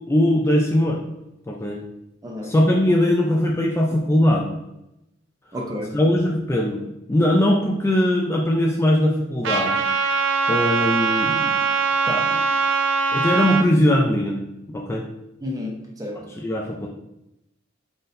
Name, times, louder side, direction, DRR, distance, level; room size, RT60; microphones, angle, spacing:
voice 1, 0.1-1.0 1.5-1.8 2.4-4.5 5.9-9.8 10.5-11.6 12.1-12.4 13.1-14.4 14.7-15.0 16.1-16.9, left 1 dB, 15° left, 0 dB, 0.3 m, -20 dB
voice 2, 2.2-2.5 5.5-5.9 15.4-16.2, left 1 dB, 20° right, 0 dB, 0.6 m, -31 dB
Trumpet, 9.4-13.6, right 5 dB, 65° right, 0.4 m, -22 dB
3.9 x 3.7 x 2.6 m, 0.87 s
head